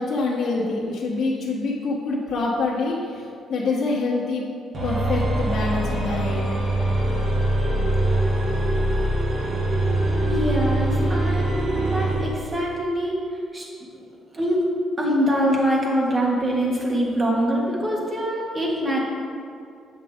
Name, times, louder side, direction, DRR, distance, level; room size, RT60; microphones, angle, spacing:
voice 1, 0.0-3.2 3.5-4.4 4.8-6.4, left 3 dB, 60° left, -5 dB, 1.1 m, -25 dB
sound 1, 4.7-12.2, right 1 dB, 55° right, 1.9 m, -23 dB
voice 2, 10.2-11.6 11.9-13.2 13.5-13.7 13.9-14.0 14.3-14.6 15.0-19.0, equal, 30° right, -3 dB, 1.8 m, -24 dB
8.5 x 6.1 x 3.6 m, 2.4 s
cardioid pair, 90°, 0 cm